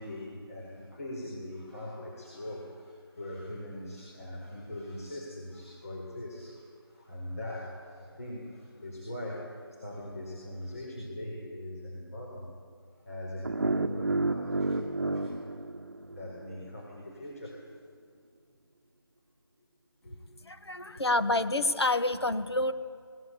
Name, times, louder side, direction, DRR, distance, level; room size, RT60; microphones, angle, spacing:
voice 1, 0.0-12.5 13.0-15.4 16.0-17.6 20.0-20.2 20.9-21.0, left 1 dB, 35° left, -2 dB, 4.4 m, -41 dB
sound 1, 13.4-16.5, right 2 dB, 45° right, 1.1 m, -31 dB
voice 2, 20.4-22.7, left 2 dB, 75° left, 10 dB, 1.8 m, -28 dB
23.5 x 19.5 x 8.3 m, 2.1 s
figure-of-eight pair, 175°, 14 cm